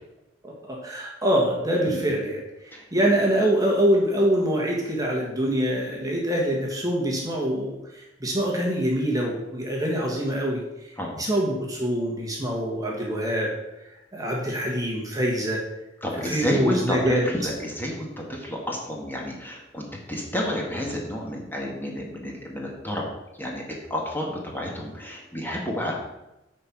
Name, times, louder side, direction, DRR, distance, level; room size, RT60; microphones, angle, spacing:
voice 1, 0.4-7.8 8.2-10.6 11.2-13.5 14.1-15.6 16.1-17.3, equal, 20° right, -2 dB, 1.4 m, -24 dB
voice 2, 16.0-23.1 23.4-23.6 23.9-25.9, equal, 10° left, -2 dB, 1.7 m, -30 dB
9.4 x 4.5 x 5.9 m, 0.96 s
head